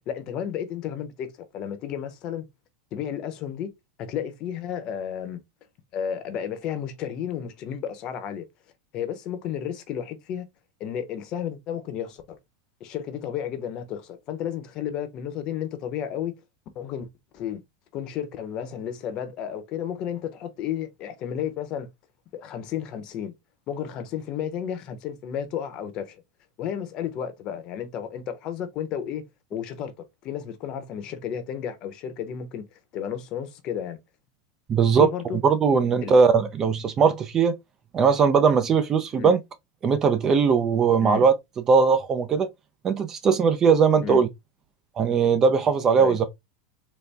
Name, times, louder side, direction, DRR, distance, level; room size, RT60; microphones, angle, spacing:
voice 1, 0.1-2.5 2.9-3.7 4.0-5.4 5.9-8.4 8.9-10.5 10.8-12.4 12.8-16.3 16.7-17.1 17.3-17.6 17.9-21.9 22.3-23.3 23.7-26.2 26.6-29.2 29.5-29.9 30.2-34.0 35.0-35.4 36.0-36.2 39.1-39.4 41.0-41.3 44.0-44.2 46.0-46.2, left 9 dB, 40° left, 0.8 m, -32 dB
voice 2, 34.7-35.1 35.4-37.5 37.9-39.4 39.8-41.3 41.7-42.5 42.8-44.3 45.0-46.3, right 5 dB, 25° right, 0.4 m, -19 dB
4.1 x 2.1 x 3.4 m
supercardioid pair, 150°, 2 cm